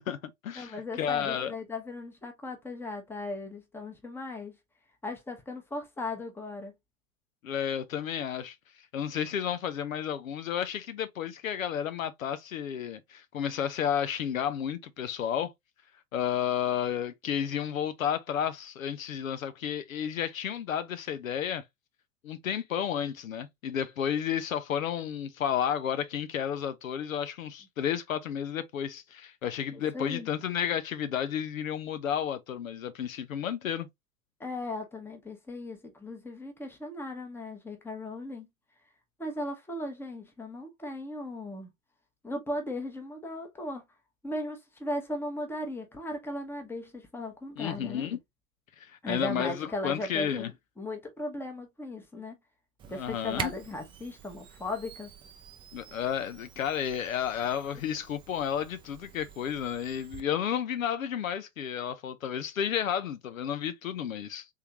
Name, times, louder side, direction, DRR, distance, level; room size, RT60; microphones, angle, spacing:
voice 1, 0.0-1.5 7.4-8.6 8.9-15.5 16.1-21.6 22.2-33.9 47.6-48.2 48.8-50.5 52.9-53.5 55.7-64.5, left 9 dB, 70° left, 0.7 m, -32 dB
voice 2, 0.6-4.6 5.0-6.7 29.7-30.3 34.4-38.5 39.2-41.7 42.2-43.8 44.2-48.1 49.0-50.5 50.8-52.4 52.9-55.1, left 1 dB, 5° left, 1.0 m, -37 dB
Camera, 52.8-60.2, right 8 dB, 10° right, 0.4 m, -46 dB
3.7 x 3.3 x 2.8 m
figure-of-eight pair, 90°, 42 cm